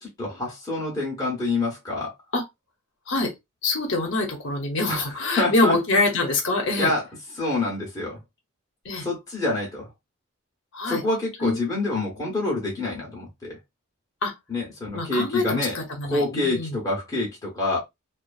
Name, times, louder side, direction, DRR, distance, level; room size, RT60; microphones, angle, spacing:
voice 1, 0.0-2.1 4.9-5.1 5.4-5.8 6.7-7.0 7.4-8.2 9.0-9.9 10.9-13.6 14.5-15.8 16.0-17.8, left 2 dB, 15° left, 0.8 m, -27 dB
voice 2, 3.6-6.9 8.8-9.1 10.7-11.0 11.4-11.6 14.2-14.3 14.9-16.8, left 2 dB, 65° left, 0.8 m, -25 dB
2.6 x 2.4 x 2.3 m
head